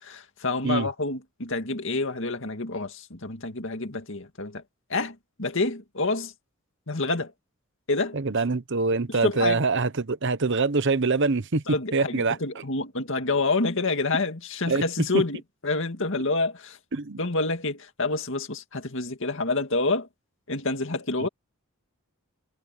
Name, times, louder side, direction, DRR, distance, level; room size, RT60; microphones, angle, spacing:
voice 1, 0.0-4.6 4.9-6.3 6.9-7.3 7.9-8.2 9.2-9.6 11.7-16.8 17.2-20.1 20.5-21.3, left 3 dB, 60° left, 2.2 m, -28 dB
voice 2, 8.1-11.6 11.9-12.4 14.7-14.8 16.9-17.2 21.2-21.3, right 3 dB, 55° right, 0.9 m, -24 dB
head